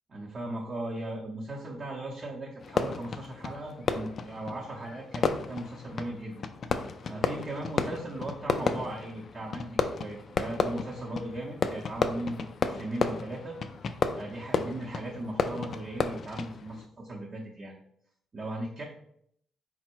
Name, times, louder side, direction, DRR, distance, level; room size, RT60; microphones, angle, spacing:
voice 1, 0.1-6.4 6.7-13.6 14.2-17.7 18.3-18.8, right 1 dB, 40° right, -4 dB, 0.8 m, -38 dB
Fireworks, 2.6-16.9, left 5 dB, 50° left, 0.3 m, -33 dB
4.2 x 2.1 x 4.4 m, 0.70 s
cardioid pair, 90°, 0 cm